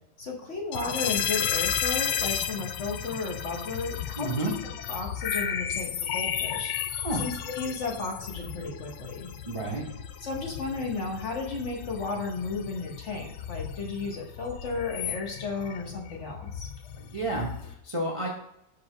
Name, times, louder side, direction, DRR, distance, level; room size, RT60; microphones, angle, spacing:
voice 1, 0.2-6.7 7.2-9.3 10.2-16.7, left 4 dB, 45° left, 1 dB, 1.1 m, -34 dB
sound 1, 0.7-17.7, left 9 dB, 80° left, 1.3 m, -34 dB
voice 2, 4.2-4.5 7.0-7.2 9.4-9.8 17.0-18.3, right 1 dB, 45° right, -1 dB, 0.4 m, -30 dB
4.9 x 4.0 x 4.8 m, 0.80 s
omnidirectional pair, 2.0 m